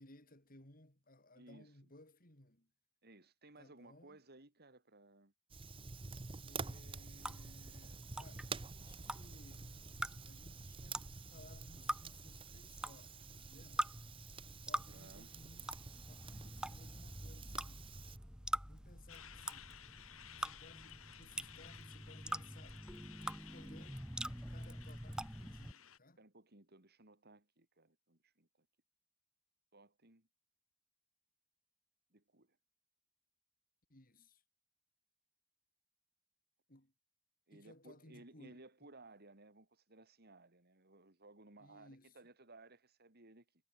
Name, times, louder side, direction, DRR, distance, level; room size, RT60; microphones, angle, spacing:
voice 1, 0.0-2.7 3.6-4.2 6.4-9.8 10.3-14.0 14.6-15.7 16.1-18.0 18.7-19.8 20.3-23.2 23.5-24.0 24.3-26.2 33.9-34.4 36.7-36.9 37.5-38.9 41.6-42.2, left 1 dB, 45° left, 6.4 m, -61 dB
voice 2, 1.3-1.7 3.0-5.3 14.7-15.3 26.2-28.7 29.7-30.3 32.1-32.6 37.5-43.5, right 2 dB, 50° right, 4.3 m, -60 dB
Fire, 5.5-18.2, right 4 dB, 25° right, 0.8 m, -49 dB
sound 1, 7.2-25.7, right 1 dB, 5° right, 1.6 m, -45 dB
Truck, 19.1-26.0, left 10 dB, 80° left, 3.6 m, -57 dB
head